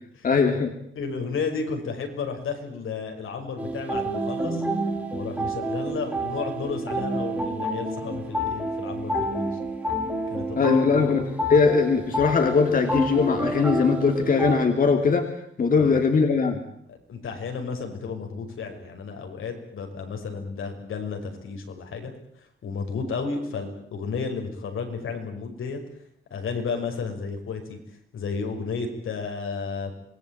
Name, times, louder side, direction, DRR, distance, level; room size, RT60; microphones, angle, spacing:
voice 1, 0.2-0.7 10.6-11.2 11.5-15.3 15.6-16.6, left 5 dB, 40° left, 4 dB, 2.8 m, -20 dB
voice 2, 0.9-4.6 5.1-9.5 10.3-11.2 15.8-16.0 16.9-22.1 22.6-25.8 26.3-27.8 28.1-29.9, left 5 dB, 80° left, 4 dB, 5.7 m, -32 dB
sound 1, 3.6-14.7, right 1 dB, 10° right, 4.1 m, -29 dB
26.5 x 20.5 x 8.9 m, 0.67 s
wide cardioid pair, 160°, 21 cm